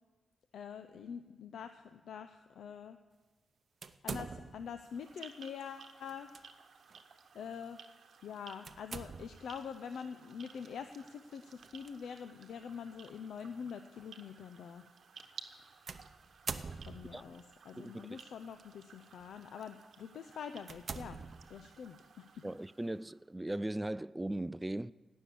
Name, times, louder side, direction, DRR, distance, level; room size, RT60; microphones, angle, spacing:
voice 1, 0.5-3.0 4.0-6.3 7.3-7.8 8.2-14.8 16.9-21.2 21.5-22.4, left 7 dB, 85° left, 0.5 m, -45 dB
sound 1, 3.8-4.8 6.1-6.4 6.9-7.0 8.6-9.5 11.6-11.9 12.7-12.8 15.9-17.3 18.2-18.6 19.2-19.4 19.9-20.0 20.6-21.8, right 5 dB, 45° right, 0.7 m, -44 dB
sound 2, 4.8-23.3, right 5 dB, 65° right, 1.0 m, -57 dB
voice 2, 17.8-18.2 22.4-24.9, right 1 dB, 15° right, 0.3 m, -38 dB
17.0 x 6.4 x 8.3 m
cardioid pair, 95°, 0 cm